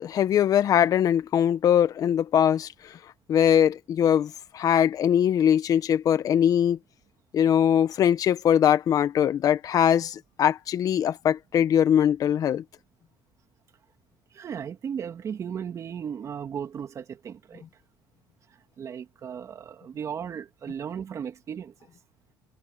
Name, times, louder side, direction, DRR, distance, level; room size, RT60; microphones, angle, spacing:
voice 1, 0.0-2.7 3.3-6.8 7.3-12.6, left 9 dB, 50° left, 1.5 m, -21 dB
voice 2, 14.3-17.6 18.8-21.7, right 8 dB, 40° right, 2.7 m, -35 dB
cardioid pair, 115°, 8 cm